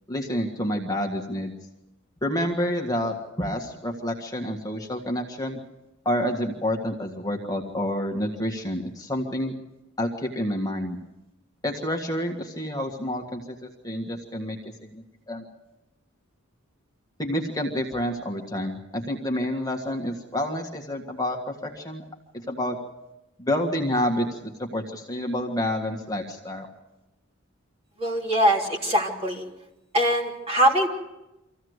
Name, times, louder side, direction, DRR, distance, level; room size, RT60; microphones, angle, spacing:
voice 1, 0.1-1.5 2.2-5.6 6.0-9.5 10.0-11.0 11.6-14.6 14.9-15.4 17.2-22.0 22.3-22.8 23.4-24.3 24.6-26.7, left 1 dB, 15° left, 2 dB, 1.7 m, -28 dB
voice 2, 28.0-29.4 29.9-30.9, equal, 30° right, 1 dB, 3.4 m, -22 dB
25.5 x 15.5 x 8.1 m, 0.97 s
head